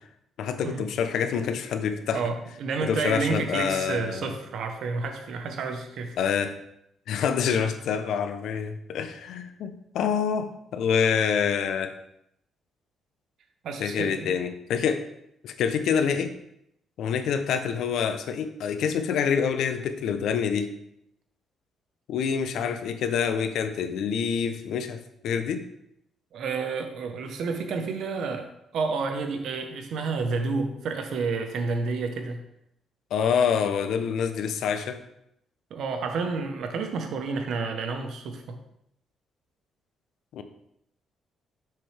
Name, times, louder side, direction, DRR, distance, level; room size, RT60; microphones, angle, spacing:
voice 1, 0.4-2.2 2.8-4.3 6.2-6.6 7.1-11.9 13.8-15.1 15.4-16.3 17.0-20.7 22.1-25.0 25.2-25.6 33.1-35.0 40.3-40.4, left 7 dB, 75° left, 8 dB, 0.7 m, -26 dB
voice 2, 2.1-6.1 13.6-14.3 26.3-32.4 35.7-38.6, right 4 dB, 70° right, 6 dB, 1.0 m, -30 dB
6.7 x 6.4 x 3.4 m, 0.78 s
cardioid pair, 90°, 0 cm